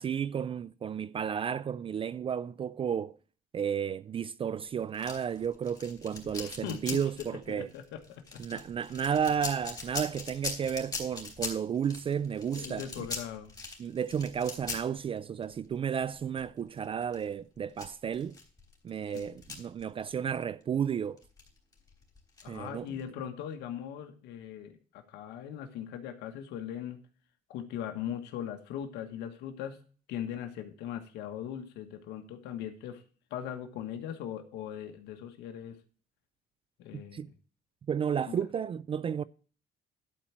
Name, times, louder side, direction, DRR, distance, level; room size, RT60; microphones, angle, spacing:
voice 1, 0.0-3.1 3.5-7.7 8.4-12.8 13.8-18.4 18.8-21.2 22.5-22.9 36.9-37.3 37.9-39.2, right 8 dB, 30° right, 0.4 m, -32 dB
sound 1, 4.9-20.4 20.6-20.8 21.2-23.0, left 4 dB, 25° left, 3.5 m, -41 dB
voice 2, 6.3-8.4 9.0-9.2 12.5-13.5 19.1-19.3 22.4-27.0 27.5-29.8 30.1-33.0 33.3-35.8 36.8-37.3 38.3-38.4, left 9 dB, 85° left, 1.3 m, -40 dB
11.5 x 4.5 x 7.3 m
cardioid pair, 110°, 17 cm